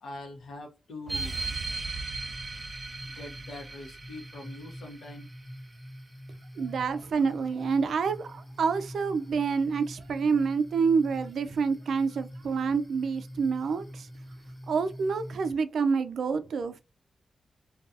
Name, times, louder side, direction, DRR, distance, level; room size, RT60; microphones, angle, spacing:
voice 1, 0.0-1.6 3.0-5.3, left 2 dB, 85° left, 0.8 m, -43 dB
sound 1, 1.1-6.1, right 3 dB, 40° right, 0.7 m, -37 dB
sound 2, 2.1-15.5, equal, 10° left, 0.7 m, -45 dB
voice 2, 6.6-14.1 14.7-16.8, right 5 dB, 80° right, 0.3 m, -28 dB
2.4 x 2.2 x 2.6 m
cardioid pair, 60°, 0 cm